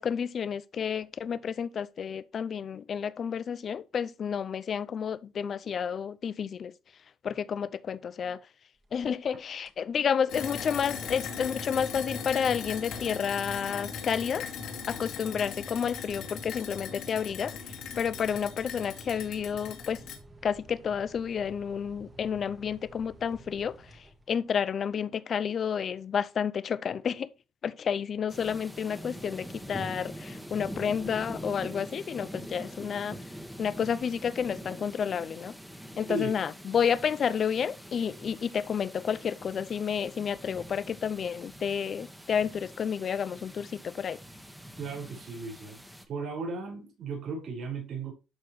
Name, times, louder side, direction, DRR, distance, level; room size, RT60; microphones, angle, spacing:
voice 1, 0.0-6.7 7.2-8.4 8.9-14.5 14.9-20.0 20.4-27.3 27.6-33.2 33.6-35.5 36.0-44.2, left 7 dB, 45° left, 0.6 m, -30 dB
sound 1, 8.8-9.3 9.6-9.9 10.4-24.7, right 1 dB, 25° right, 1.7 m, -55 dB
sound 2, 10.3-20.2, left 6 dB, 75° left, 2.5 m, -39 dB
sound 3, 28.3-46.0, equal, 5° right, 1.4 m, -44 dB
voice 2, 44.8-45.8 46.1-48.1, right 3 dB, 50° right, 5.3 m, -35 dB
12.0 x 4.5 x 3.2 m
cardioid pair, 100°, 0 cm